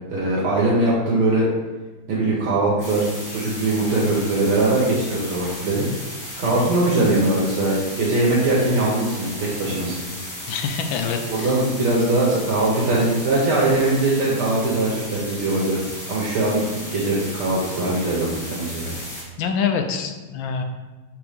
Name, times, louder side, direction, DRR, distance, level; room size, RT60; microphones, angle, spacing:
voice 1, 0.1-1.5 2.1-5.9 6.4-10.0 11.3-15.8 16.1-18.9, right 2 dB, 90° right, -5 dB, 2.0 m, -21 dB
sound 1, 2.8-19.2, equal, 10° left, 1.3 m, -35 dB
voice 2, 10.5-11.6 19.4-20.6, left 6 dB, 75° left, 5 dB, 1.3 m, -25 dB
6.1 x 3.6 x 5.1 m, 1.2 s
omnidirectional pair, 2.3 m